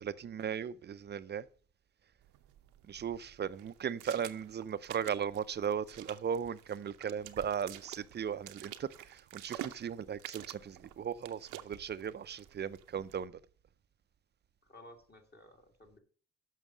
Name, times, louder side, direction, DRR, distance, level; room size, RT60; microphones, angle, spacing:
voice 1, 0.0-1.5 2.9-13.3, right 8 dB, 35° right, 0.5 m, -37 dB
sound 1, 2.2-13.3, right 13 dB, 85° right, 0.7 m, -50 dB
voice 2, 14.6-16.0, left 1 dB, 35° left, 2.3 m, -56 dB
7.4 x 5.8 x 6.2 m
cardioid pair, 90°, 30 cm